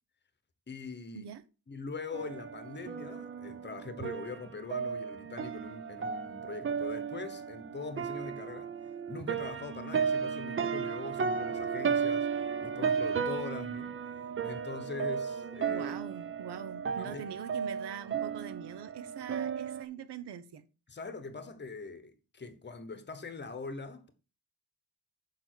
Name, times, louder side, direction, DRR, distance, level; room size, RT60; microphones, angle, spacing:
voice 1, 0.7-1.3 1.7-8.7 9.1-12.3 12.6-14.0 14.4-16.0 17.0-17.3 20.9-24.1, left 4 dB, 25° left, 1.1 m, -42 dB
sound 1, 2.1-19.8, right 6 dB, 30° right, 0.5 m, -34 dB
voice 2, 15.7-20.6, right 9 dB, 75° right, 1.0 m, -43 dB
6.9 x 5.3 x 6.2 m
wide cardioid pair, 160°, 41 cm